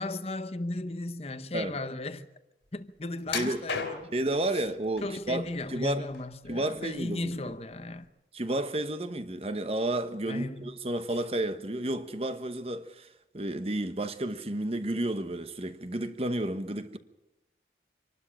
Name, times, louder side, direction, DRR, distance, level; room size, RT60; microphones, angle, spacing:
voice 1, 0.0-2.3 2.7-4.1 4.5-4.6 5.0-8.1 10.3-10.7, left 2 dB, 35° left, 0.9 m, -36 dB
sound 1, 3.3-4.3 5.0-5.6 6.0-7.0 7.3-7.5 8.0-8.1, left 5 dB, 90° left, 3.5 m, -35 dB
voice 2, 4.1-6.1 6.5-7.5 8.3-13.1 13.3-17.0, right 1 dB, 35° right, 1.1 m, -31 dB
26.0 x 12.5 x 8.8 m
head